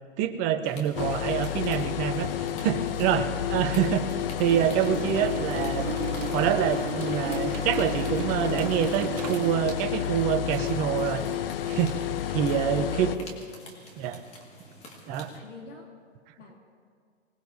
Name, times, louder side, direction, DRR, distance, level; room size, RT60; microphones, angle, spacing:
voice 1, 0.2-5.9 6.3-11.2 11.7-12.0 12.3-13.1 14.0-14.2 15.1-15.3, right 9 dB, 20° right, 8 dB, 0.7 m, -26 dB
sound 1, 0.6-15.4, left 1 dB, 15° left, 2.0 m, -48 dB
sound 2, 1.0-13.2, left 11 dB, 50° left, 0.7 m, -30 dB
sound 3, 4.5-9.5, right 8 dB, 85° right, 1.0 m, -35 dB
voice 2, 12.3-13.2 15.3-15.8 16.4-16.6, left 3 dB, 75° left, -1 dB, 3.1 m, -43 dB
25.0 x 19.0 x 2.8 m, 2.1 s
hypercardioid pair, 140°, 37 cm